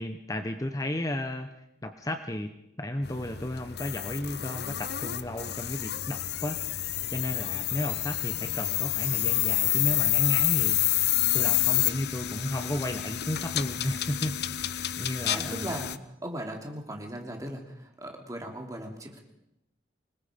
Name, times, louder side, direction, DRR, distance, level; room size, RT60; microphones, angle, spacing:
voice 1, 0.0-1.5 1.8-2.5 2.8-11.1 11.3-15.8, left 1 dB, 20° left, 7 dB, 0.9 m, -33 dB
sound 1, 3.0-16.0, left 14 dB, 60° left, 0.7 m, -29 dB
voice 2, 15.3-19.2, right 1 dB, 20° right, 2 dB, 2.9 m, -38 dB
25.5 x 20.5 x 5.2 m, 0.83 s
head